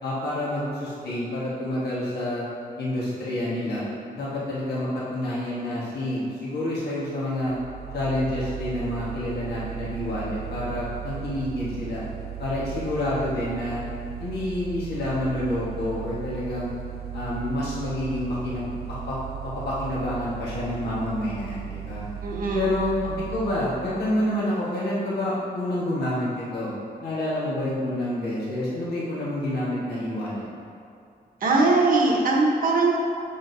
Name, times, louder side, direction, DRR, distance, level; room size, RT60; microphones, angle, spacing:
voice 1, 0.0-2.5 2.8-7.5 7.9-12.0 12.4-13.8 14.2-16.7 17.1-18.7 19.1-19.2 19.4-22.1 22.5-22.9 23.3-26.7 27.0-30.5, left 1 dB, 90° left, -8 dB, 1.4 m, -28 dB
Mechanical fan, 7.4-24.3, right 11 dB, 80° right, 0.4 m, -36 dB
voice 2, 22.2-22.6 31.4-32.9, right 3 dB, 60° right, -2 dB, 1.0 m, -20 dB
7.0 x 6.2 x 2.7 m, 2.5 s
wide cardioid pair, 120°, 16 cm